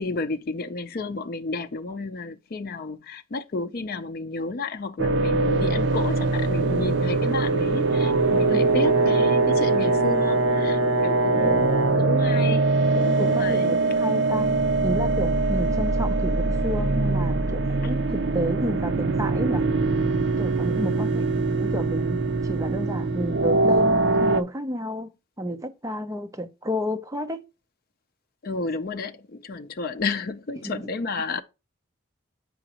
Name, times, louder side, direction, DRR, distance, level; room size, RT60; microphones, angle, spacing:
voice 1, 0.0-11.7 12.0-12.6 12.9-13.8 20.8-21.2 28.4-31.4, left 3 dB, 45° left, 0.5 m, -31 dB
sound 1, 5.0-24.4, right 3 dB, 55° right, 0.5 m, -23 dB
Brass instrument, 7.9-12.1, right 1 dB, 80° right, 1.2 m, -24 dB
voice 2, 13.2-14.5 14.8-19.7 20.4-25.1 25.4-27.5 30.6-30.9, equal, 15° right, 0.6 m, -31 dB
7.7 x 5.1 x 2.8 m
head